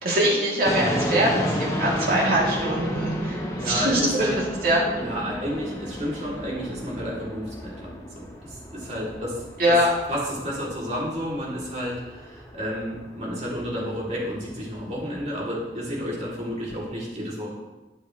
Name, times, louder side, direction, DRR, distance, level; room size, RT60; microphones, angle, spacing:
voice 1, 0.0-3.4 3.6-4.3 4.6-5.1 9.6-9.9, right 1 dB, 55° right, -5 dB, 3.3 m, -23 dB
sound 1, 0.6-16.9, equal, 20° left, 1.2 m, -33 dB
voice 2, 3.6-4.4 5.0-9.8 10.1-17.5, equal, 40° right, -5 dB, 3.5 m, -31 dB
13.0 x 8.3 x 3.4 m, 1.1 s
head